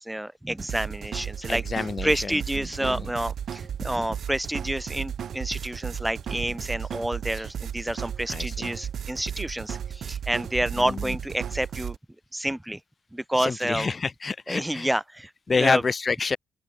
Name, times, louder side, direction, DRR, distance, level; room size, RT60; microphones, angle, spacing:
voice 1, 0.0-1.6 2.0-12.0 12.3-12.8 13.1-13.9 14.5-15.3 15.6-15.8, right 1 dB, 5° right, 0.8 m, -29 dB
sound 1, 0.6-12.0, right 8 dB, 60° right, 1.6 m, -34 dB
voice 2, 1.5-2.3 2.8-3.1 7.4-7.5 8.3-8.7 10.9-11.0 13.4-14.9 15.5-16.4, left 4 dB, 35° left, 0.4 m, -27 dB
open air
cardioid pair, 90°, 0 cm